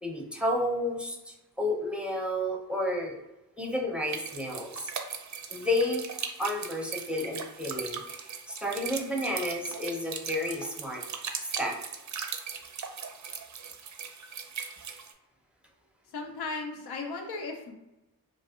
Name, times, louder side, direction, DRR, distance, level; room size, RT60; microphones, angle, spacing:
voice 1, 0.0-3.2 3.6-4.8 5.5-6.0 6.4-11.0 11.6-11.8, left 1 dB, 5° right, -1 dB, 0.6 m, -31 dB
sound 1, 4.1-15.1, right 6 dB, 50° right, 0.4 m, -39 dB
voice 2, 16.1-17.7, left 3 dB, 80° left, 3 dB, 0.6 m, -36 dB
2.6 x 2.3 x 2.4 m, 0.97 s
supercardioid pair, 40°, 38 cm